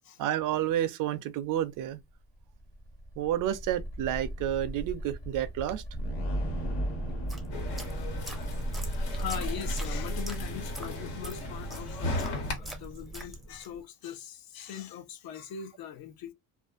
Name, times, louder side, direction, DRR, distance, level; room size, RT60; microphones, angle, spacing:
voice 1, 0.2-2.0 3.2-5.8, right 11 dB, 55° right, 0.4 m, -30 dB
sound 1, 2.4-10.8, right 1 dB, 35° left, 1.1 m, -35 dB
sound 2, 7.1-13.8, right 1 dB, ahead, 0.5 m, -43 dB
sound 3, 7.5-12.5, left 1 dB, 80° left, 1.5 m, -37 dB
voice 2, 8.7-16.3, left 9 dB, 60° left, 0.7 m, -41 dB
2.5 x 2.3 x 2.3 m
cardioid pair, 130°, 40 cm